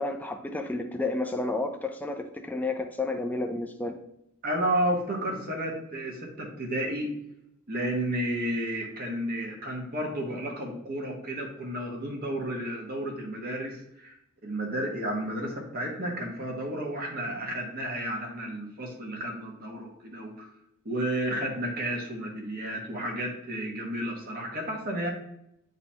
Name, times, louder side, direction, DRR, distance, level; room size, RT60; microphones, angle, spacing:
voice 1, 0.0-4.0, left 2 dB, 10° left, 5 dB, 0.4 m, -31 dB
voice 2, 4.4-7.1 7.7-14.2 14.4-20.5 20.8-25.1, right 1 dB, 45° right, 0 dB, 1.2 m, -32 dB
8.7 x 3.9 x 2.8 m, 0.79 s
head